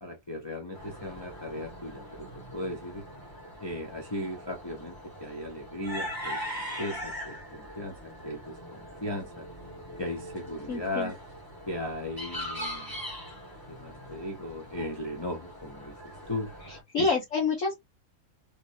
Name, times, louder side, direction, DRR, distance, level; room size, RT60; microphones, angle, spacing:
voice 1, 0.0-3.0 3.6-6.4 6.8-8.0 8.2-9.5 10.0-11.2 11.7-12.9 13.7-16.5 17.0-17.1, left 1 dB, 30° left, 0.4 m, -37 dB
sound 1, 0.7-16.8, equal, 15° left, 1.6 m, -41 dB
voice 2, 10.7-11.1 16.7-17.7, left 4 dB, 55° left, 1.4 m, -28 dB
3.3 x 3.0 x 2.5 m
omnidirectional pair, 1.7 m